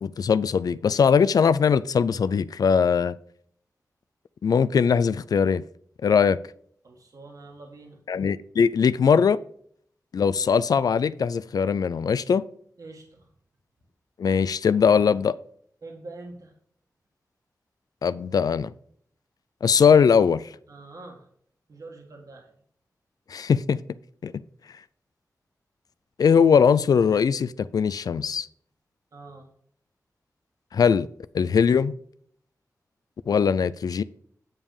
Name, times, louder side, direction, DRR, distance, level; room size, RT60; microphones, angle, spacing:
voice 1, 0.0-3.2 4.4-5.6 6.0-6.4 8.1-9.4 10.1-12.4 14.2-15.3 18.0-18.7 19.6-20.4 23.3-23.8 24.2-24.3 26.2-28.5 30.7-31.1 31.3-31.9 33.3-34.0, left 6 dB, 80° left, 0.4 m, -20 dB
voice 2, 6.8-8.0 12.8-13.3 15.8-16.5 20.7-21.3 21.7-22.5 29.1-29.5, right 3 dB, 65° right, 1.7 m, -44 dB
8.9 x 5.4 x 4.8 m
wide cardioid pair, 100°, 6 cm